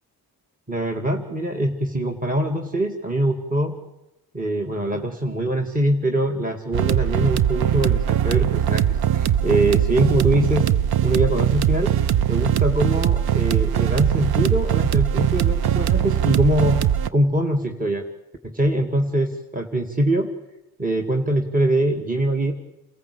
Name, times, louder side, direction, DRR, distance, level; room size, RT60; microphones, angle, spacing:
voice 1, 0.7-3.8 4.3-10.7 11.0-12.0 12.3-16.8 17.1-18.1 18.4-20.3 20.8-22.5, right 1 dB, 20° right, 4 dB, 2.2 m, -23 dB
sound 1, 6.7-17.1, right 10 dB, 75° right, 0.8 m, -20 dB
28.0 x 14.5 x 8.5 m, 0.94 s
supercardioid pair, 50°, 39 cm